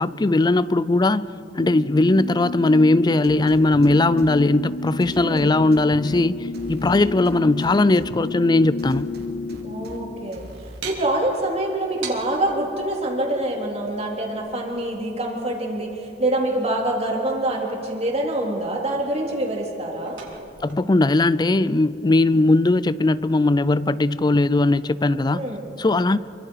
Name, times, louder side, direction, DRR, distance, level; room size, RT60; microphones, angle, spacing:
voice 1, 0.0-6.4 6.7-9.1 20.6-25.4 25.8-26.2, left 2 dB, 25° left, 17 dB, 0.5 m, -19 dB
sound 1, 1.6-10.3, left 3 dB, 70° left, 0.6 m, -31 dB
sound 2, 3.2-4.3 5.0-6.2 6.5-8.1 8.8-10.0 10.3-10.8, right 1 dB, 60° right, 2.7 m, -42 dB
voice 2, 5.2-5.5 9.6-10.4 10.8-20.2 25.3-25.6, right 1 dB, 35° right, -1 dB, 3.7 m, -25 dB
sound 3, 10.8-12.6 14.4-15.5 17.5-18.6 19.0-21.2, right 6 dB, 85° right, 3.3 m, -41 dB
27.0 x 24.5 x 4.8 m, 2.8 s
head